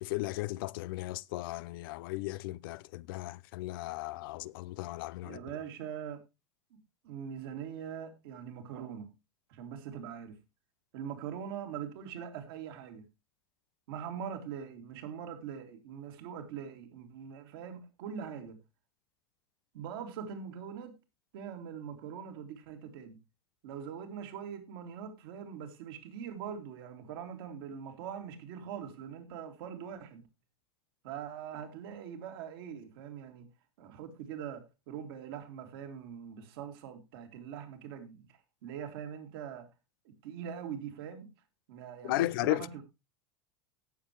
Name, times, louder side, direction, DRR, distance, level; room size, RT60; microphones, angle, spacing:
voice 1, 0.0-5.4 42.0-42.7, left 18 dB, 55° left, 0.6 m, -35 dB
voice 2, 5.2-6.2 7.0-9.1 9.5-10.4 10.9-13.0 13.9-18.6 19.7-21.0 21.3-23.2 23.6-30.2 31.0-33.5 33.8-38.3 38.6-39.7 40.0-41.3 41.7-42.8, right 8 dB, 60° right, 2.8 m, -42 dB
18.0 x 7.1 x 3.2 m
figure-of-eight pair, 85°, 14 cm